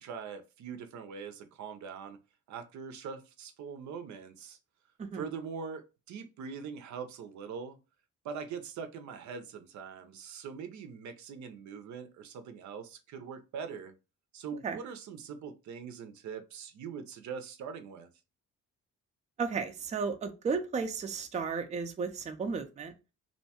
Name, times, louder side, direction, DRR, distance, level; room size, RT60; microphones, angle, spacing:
voice 1, 0.0-2.2 2.5-4.6 5.1-7.8 8.2-13.9 14.3-18.1, right 6 dB, 70° right, 0.6 m, -42 dB
voice 2, 19.4-22.9, right 5 dB, 25° right, 0.4 m, -34 dB
2.7 x 2.2 x 2.8 m
cardioid pair, 90°, 30 cm